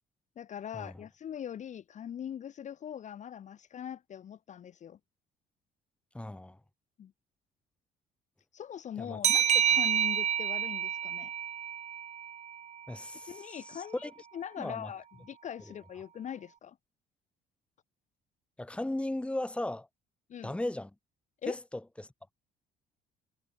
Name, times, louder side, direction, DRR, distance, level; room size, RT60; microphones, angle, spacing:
voice 1, 0.4-5.0 7.0-7.1 8.5-11.3 13.3-16.8 20.3-20.6 21.4-21.6, left 9 dB, 45° left, 1.1 m, -42 dB
voice 2, 6.1-6.6 9.0-9.2 12.9-13.3 13.7-14.1 14.6-14.9 18.6-19.9 20.4-20.9 21.5-21.6 22.0-22.1, left 1 dB, 5° left, 2.1 m, -36 dB
sound 1, 9.2-12.6, right 9 dB, 40° right, 0.7 m, -28 dB
cardioid pair, 110°, 17 cm